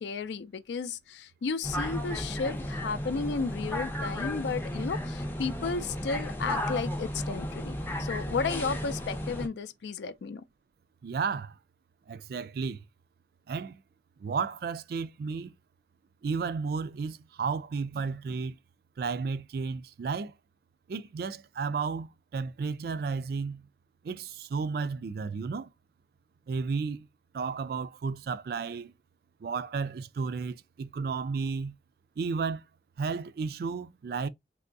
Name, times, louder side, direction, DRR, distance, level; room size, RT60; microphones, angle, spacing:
voice 1, 0.0-7.7 8.0-10.4, left 4 dB, 75° left, 0.4 m, -33 dB
sound 1, 1.6-9.5, equal, 10° left, 0.5 m, -34 dB
voice 2, 11.0-11.5 12.1-12.8 13.5-13.8 14.2-15.5 16.2-18.6 19.0-20.3 20.9-23.7 24.0-25.7 26.5-27.1 27.3-28.9 29.4-31.8 32.2-32.6 33.0-34.3, right 5 dB, 55° right, 0.3 m, -33 dB
3.4 x 2.9 x 2.6 m
head